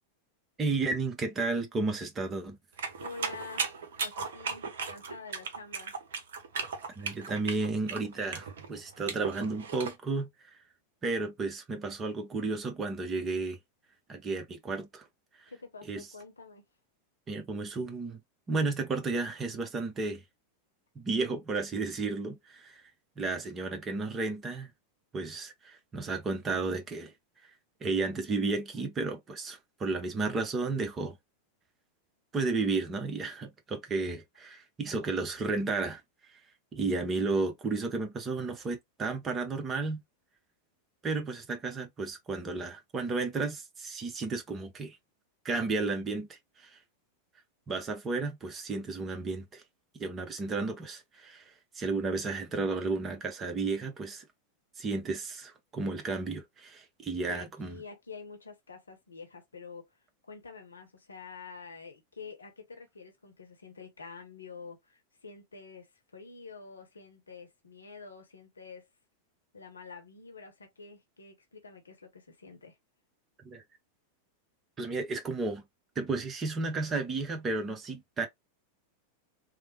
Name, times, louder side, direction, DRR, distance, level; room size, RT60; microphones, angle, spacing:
voice 1, 0.6-2.6 7.0-10.3 11.0-13.6 14.1-15.0 15.8-16.1 17.3-18.2 18.5-20.2 20.9-22.8 23.2-24.7 25.1-27.1 27.8-31.2 32.3-36.0 36.7-40.0 41.0-45.0 45.4-46.8 47.7-49.6 49.9-54.3 54.8-57.8 73.4-73.6 74.8-75.6 76.0-78.3, right 3 dB, 20° right, 0.8 m, -33 dB
sound 1, 2.8-10.0, right 5 dB, 60° right, 0.6 m, -36 dB
voice 2, 3.0-3.7 4.0-5.9 15.5-16.6 57.2-59.9 60.2-65.9 66.1-68.9 69.5-72.8, left 4 dB, 75° left, 0.8 m, -47 dB
3.2 x 2.1 x 2.9 m
figure-of-eight pair, 90°, 0 cm